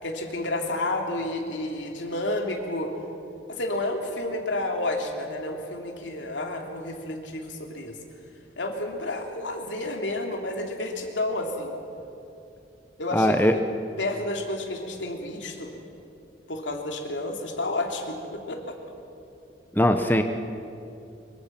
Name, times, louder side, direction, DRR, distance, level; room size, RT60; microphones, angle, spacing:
voice 1, 0.0-2.9 3.5-8.0 8.6-11.7 13.0-13.6 14.0-15.8 16.5-18.7, left 1 dB, 85° left, 2 dB, 3.0 m, -30 dB
voice 2, 13.1-13.5 19.7-20.2, left 1 dB, 10° left, 6 dB, 0.9 m, -20 dB
24.5 x 23.0 x 6.0 m, 2.7 s
head